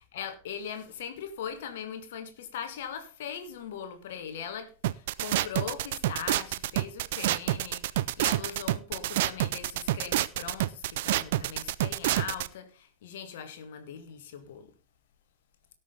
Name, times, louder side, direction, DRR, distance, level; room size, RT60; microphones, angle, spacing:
voice 1, 0.0-14.7, left 8 dB, 55° left, 1.8 m, -40 dB
sound 1, 4.8-12.5, right 15 dB, 55° right, 0.5 m, -28 dB
18.0 x 6.4 x 3.8 m
figure-of-eight pair, 90°, 0 cm